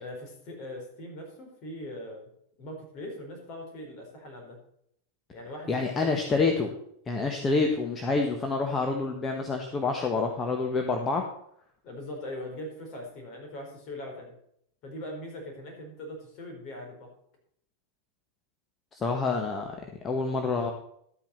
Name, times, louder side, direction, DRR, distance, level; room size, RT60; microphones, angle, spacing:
voice 1, 0.0-2.3 2.6-4.6 5.3-6.5 11.8-14.3 14.8-17.1, left 1 dB, 40° left, 2 dB, 4.4 m, -41 dB
voice 2, 5.7-6.7 7.1-11.2 19.0-19.8 20.0-20.7, left 4 dB, 20° left, 2 dB, 1.4 m, -27 dB
12.0 x 9.0 x 4.4 m, 0.69 s
figure-of-eight pair, 90°, 0 cm